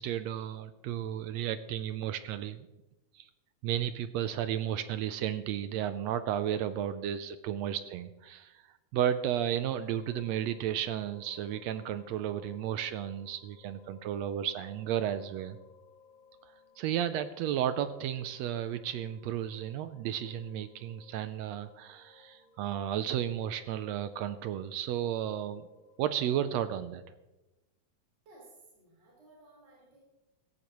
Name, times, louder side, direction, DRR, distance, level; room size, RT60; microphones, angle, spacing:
voice 1, 0.0-2.7 3.1-3.3 3.6-8.6 8.9-15.6 16.8-25.7 26.0-27.0, right 10 dB, 80° right, 12 dB, 1.6 m, -33 dB
sound 1, 9.8-26.4, left 5 dB, 65° right, 5.7 m, -61 dB
voice 2, 28.2-30.0, right 2 dB, 35° right, -5 dB, 4.8 m, -57 dB
16.0 x 15.5 x 3.1 m, 1.0 s
omnidirectional pair, 3.4 m